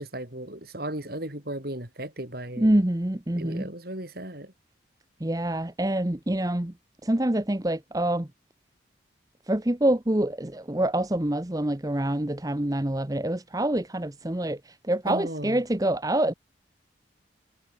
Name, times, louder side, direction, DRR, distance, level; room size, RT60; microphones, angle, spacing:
voice 1, 0.0-2.7 3.3-4.5 15.1-15.6, right 1 dB, 50° right, 4.5 m, -35 dB
voice 2, 2.6-3.6 5.2-6.7 7.0-8.3 9.5-14.6 14.9-16.3, right 1 dB, 20° right, 0.9 m, -26 dB
head